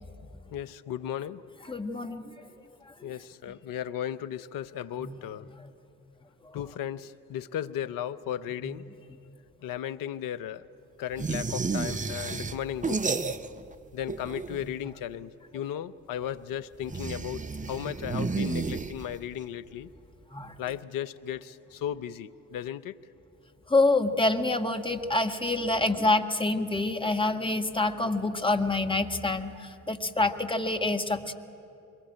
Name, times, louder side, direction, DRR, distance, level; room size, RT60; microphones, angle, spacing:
voice 1, 0.5-1.4 3.0-5.5 6.5-8.8 9.6-10.7 11.0-13.2 13.9-19.9 20.6-23.0, left 10 dB, 65° left, 14 dB, 0.8 m, -35 dB
voice 2, 1.7-2.3 5.0-5.2 6.5-6.6 20.3-20.5 23.7-31.3, left 2 dB, 15° left, 6 dB, 1.5 m, -27 dB
sound 1, 11.2-13.8 14.0-14.8 16.8-19.3, right 4 dB, 20° right, 0.8 m, -32 dB
22.5 x 19.5 x 8.8 m, 2.7 s
hypercardioid pair, 45°, 37 cm